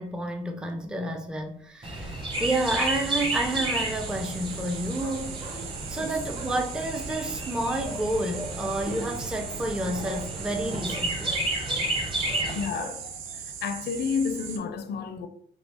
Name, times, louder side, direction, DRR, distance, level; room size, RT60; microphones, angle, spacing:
voice 1, 0.0-5.4 5.9-11.3, right 1 dB, 5° right, 0.4 m, -30 dB
Chirp tweet, 1.8-12.7, right 1 dB, 25° right, 0.9 m, -32 dB
sound 1, 2.2-2.8 4.9-5.6 6.3-6.5 7.8-8.0 8.3-8.5 8.8-9.0 10.1-10.2 10.9-11.8 12.2-12.4 12.8-13.0, right 2 dB, 40° right, 1.1 m, -42 dB
sound 2, 2.3-14.6, right 7 dB, 90° right, 0.5 m, -40 dB
voice 2, 12.5-15.3, left 5 dB, 55° left, 0.4 m, -31 dB
3.1 x 2.4 x 3.3 m
cardioid pair, 90°, 20 cm